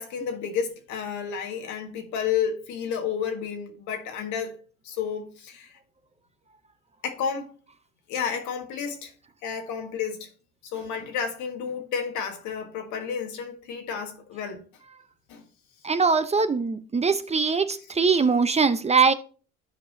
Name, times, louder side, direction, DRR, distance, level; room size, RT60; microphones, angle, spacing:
voice 1, 0.0-4.6 4.8-5.7 7.0-7.6 8.1-9.1 9.4-10.3 10.6-14.6 15.3-15.4, left 7 dB, 75° left, 1.7 m, -31 dB
voice 2, 15.8-19.1, right 5 dB, 20° right, 0.6 m, -22 dB
13.5 x 4.9 x 2.7 m
supercardioid pair, 90°, 30 cm